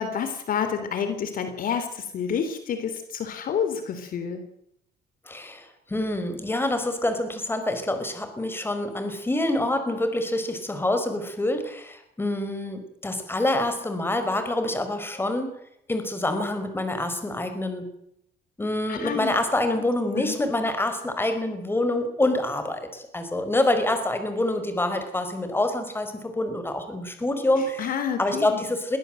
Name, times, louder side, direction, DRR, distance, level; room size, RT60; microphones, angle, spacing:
voice 1, 0.0-4.4 18.9-19.3 20.1-20.4 27.8-28.6, left 7 dB, 55° left, 9 dB, 3.4 m, -29 dB
voice 2, 5.3-15.5 15.9-17.9 18.6-29.0, left 1 dB, 15° left, 8 dB, 5.1 m, -26 dB
22.5 x 17.5 x 7.8 m, 0.73 s
cardioid pair, 110°, 17 cm